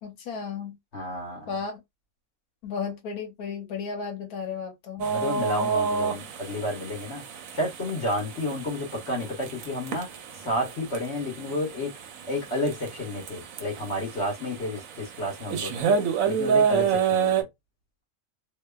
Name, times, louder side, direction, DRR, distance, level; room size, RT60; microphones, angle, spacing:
voice 1, 0.0-0.8 1.5-1.8 2.6-5.1, left 6 dB, 85° left, 1.2 m, -34 dB
voice 2, 0.9-1.4 5.0-7.2 7.5-10.1 10.4-11.9 12.3-16.0 16.3-17.3, left 1 dB, 50° left, 1.2 m, -31 dB
sound 1, 5.0-17.4, right 6 dB, 70° right, 0.9 m, -29 dB
2.7 x 2.3 x 2.2 m
omnidirectional pair, 1.6 m